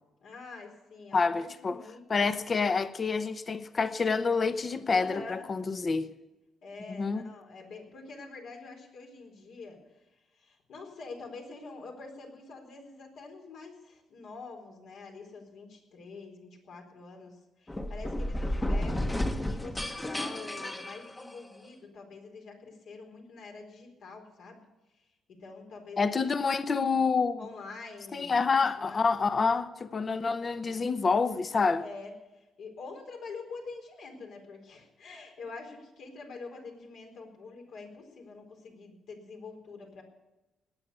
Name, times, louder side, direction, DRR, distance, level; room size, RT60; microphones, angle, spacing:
voice 1, 0.2-2.3 4.9-5.5 6.6-24.6 25.4-26.1 27.4-28.5 28.8-29.0 30.7-30.8 31.8-40.0, left 4 dB, 75° left, 4.3 m, -46 dB
voice 2, 1.1-1.8 2.1-6.1 6.9-7.3 26.0-27.4 28.1-31.8, left 4 dB, 35° left, 0.9 m, -27 dB
sound 1, 17.7-21.7, left 1 dB, 15° left, 1.1 m, -32 dB
19.5 x 8.7 x 6.9 m
cardioid pair, 95°, 0 cm